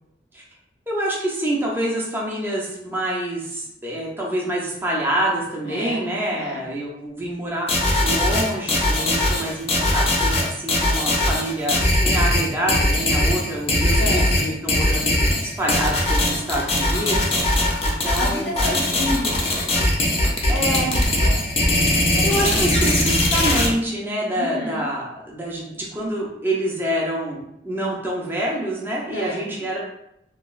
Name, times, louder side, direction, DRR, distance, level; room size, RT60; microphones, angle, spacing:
voice 1, 0.9-18.8 20.5-20.9 22.2-29.8, right 1 dB, 10° right, -4 dB, 0.6 m, -26 dB
voice 2, 5.6-6.1 6.3-6.6 14.0-14.5 17.3-17.6 18.2-21.5 22.1-22.9 24.3-24.9 29.1-29.7, left 1 dB, 65° left, -2 dB, 0.8 m, -32 dB
sound 1, 7.7-23.7, left 1 dB, 35° left, 0.5 m, -20 dB
3.0 x 2.3 x 2.3 m, 0.81 s
head